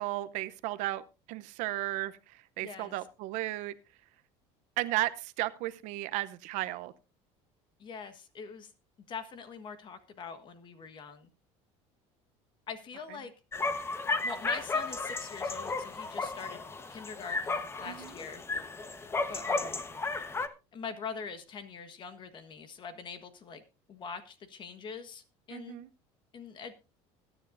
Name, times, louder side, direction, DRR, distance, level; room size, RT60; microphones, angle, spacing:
voice 1, 0.0-2.2 2.6-3.7 4.8-6.9 17.9-18.1 25.5-25.9, right 17 dB, 70° right, 0.8 m, -34 dB
voice 2, 2.6-3.0 7.8-8.7 9.1-11.3 12.7-13.3 14.0-16.6 16.9-18.4 19.3-19.8 20.7-23.6 23.9-25.8 26.3-26.7, left 5 dB, 35° left, 1.4 m, -43 dB
sound 1, 13.5-20.5, left 3 dB, 20° left, 1.1 m, -34 dB
20.5 x 10.0 x 2.6 m
cardioid pair, 130°, 13 cm